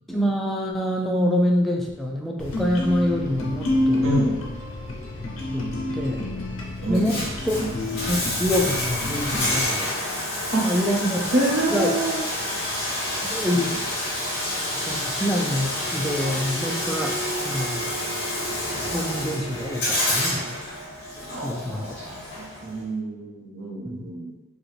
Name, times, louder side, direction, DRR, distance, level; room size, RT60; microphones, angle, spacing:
voice 1, 0.1-4.2 5.5-5.6 5.9-6.3 6.9-7.5 8.1-9.9 10.6-11.2 11.7-12.0 13.2-13.7 14.9-17.2 17.4-18.0 18.9-20.6 21.4-21.9 23.9-24.0, equal, ahead, -1 dB, 0.3 m, -26 dB
sound 1, 2.4-9.6, left 1 dB, 65° left, 0.7 m, -28 dB
voice 2, 4.0-4.4 6.8-7.2 10.5-10.6 11.3-12.2 13.5-13.6 21.3-22.0 22.4-24.3, right 1 dB, 75° right, -3 dB, 1.0 m, -26 dB
Bathtub (filling or washing), 6.8-22.8, left 1 dB, 50° left, 1.3 m, -29 dB
Bowed string instrument, 15.8-20.6, right 2 dB, 45° right, 0.9 m, -37 dB
4.9 x 2.3 x 3.2 m, 1.1 s
head